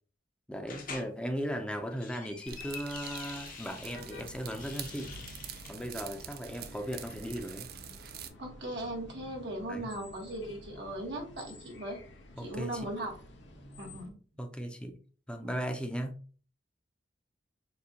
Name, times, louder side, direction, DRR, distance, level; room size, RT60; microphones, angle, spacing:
voice 1, 0.5-5.1 5.7-7.7 9.7-9.9 12.4-12.9 14.4-15.0 15.3-16.1, equal, 5° left, 0.6 m, -37 dB
sound 1, 0.7-1.1 1.8-4.0 4.5-5.7, left 5 dB, 50° left, 0.8 m, -46 dB
sound 2, 2.5-8.3, right 8 dB, 60° right, 0.4 m, -46 dB
sound 3, 3.9-14.1, left 1 dB, 85° left, 1.0 m, -51 dB
voice 2, 8.4-12.0 12.4-13.2 13.8-14.2 15.4-15.6, right 1 dB, 75° right, 1.4 m, -38 dB
6.7 x 2.4 x 2.8 m
head